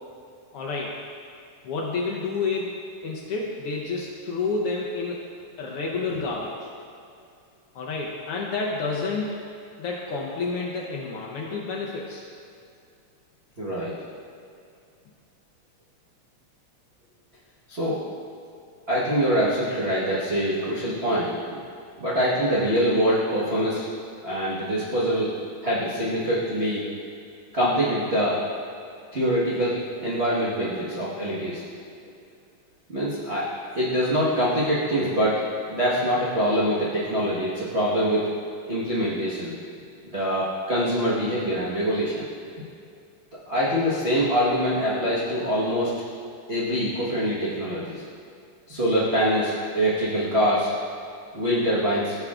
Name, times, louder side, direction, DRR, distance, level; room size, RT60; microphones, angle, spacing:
voice 1, 0.5-0.9 1.6-2.7 3.0-5.2 5.6-6.7 7.7-9.4 9.8-12.2, left 4 dB, 70° left, -2 dB, 1.4 m, -29 dB
voice 2, 13.6-13.9 17.7-18.0 18.9-21.6 22.0-23.8 24.2-25.3 25.6-26.8 27.5-28.4 29.1-31.6 32.9-35.4 35.7-38.3 38.7-39.5 40.1-42.3 43.5-45.9 46.5-48.0 48.7-50.7 51.3-52.2, equal, 80° right, -9 dB, 0.5 m, -24 dB
15.0 x 6.8 x 2.4 m, 2.4 s
omnidirectional pair, 3.4 m